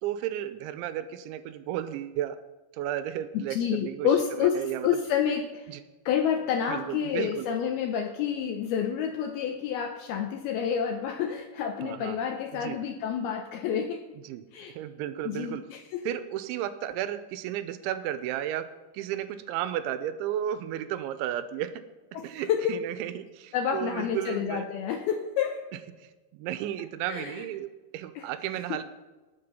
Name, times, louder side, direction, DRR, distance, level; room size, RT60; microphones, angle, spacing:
voice 1, 0.0-2.4 2.7-4.1 4.4-4.9 5.7-5.8 6.7-7.5 11.8-12.2 12.5-12.8 14.1-14.4 14.7-15.6 16.0-18.7 18.9-21.8 22.2-24.7 26.0-28.8, right 11 dB, 90° right, 12 dB, 3.1 m, -33 dB
voice 2, 3.3-5.7 6.1-14.0 14.5-14.7 15.3-16.1 22.1-22.7 23.5-25.7 27.1-27.3 28.2-28.3, left 8 dB, 80° left, 5 dB, 2.3 m, -29 dB
19.0 x 7.7 x 5.6 m, 1.2 s
omnidirectional pair, 5.3 m